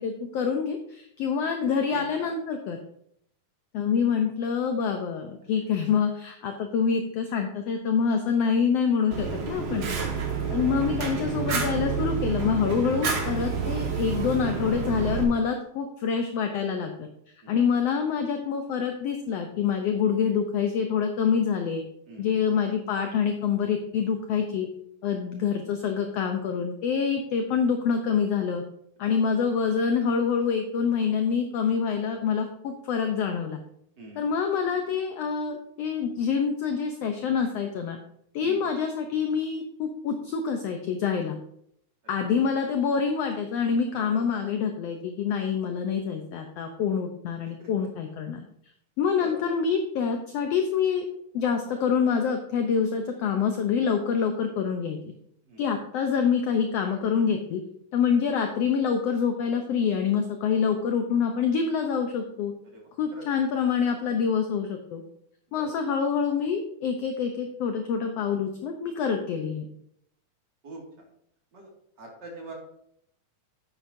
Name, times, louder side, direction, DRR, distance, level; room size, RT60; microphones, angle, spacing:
voice 1, 0.0-2.8 3.7-9.9 10.5-17.1 17.5-21.8 22.2-24.7 25.0-28.6 29.0-33.6 34.1-38.0 38.3-41.4 42.1-48.4 49.0-51.1 51.3-55.0 55.6-57.6 57.9-62.5 63.0-65.0 65.5-69.7, left 6 dB, 75° left, 5 dB, 1.5 m, -26 dB
voice 2, 1.9-2.3 9.9-10.2 17.4-17.6 22.1-22.4 29.0-29.1 34.0-34.3 38.4-38.6 42.2-42.3 43.9-44.3 47.6-47.7 49.1-49.6 55.5-55.7 62.7-62.8 63.1-63.3 65.5-65.7 70.6-71.1 71.5-71.7 72.0-72.5, right 2 dB, 35° right, -1 dB, 2.4 m, -43 dB
Fire, 9.1-15.2, right 5 dB, 55° right, 1.7 m, -29 dB
11.0 x 8.6 x 2.7 m, 0.70 s
omnidirectional pair, 3.6 m